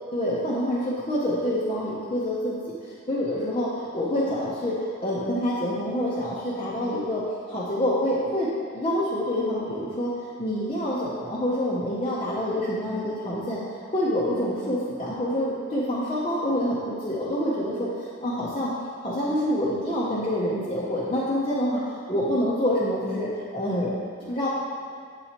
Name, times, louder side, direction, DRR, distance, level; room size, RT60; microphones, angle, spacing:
voice 1, 0.1-7.2 7.5-10.1 10.4-13.7 13.9-18.7 19.0-24.5, equal, 25° left, -8 dB, 0.6 m, -27 dB
7.8 x 4.3 x 2.9 m, 2.2 s
head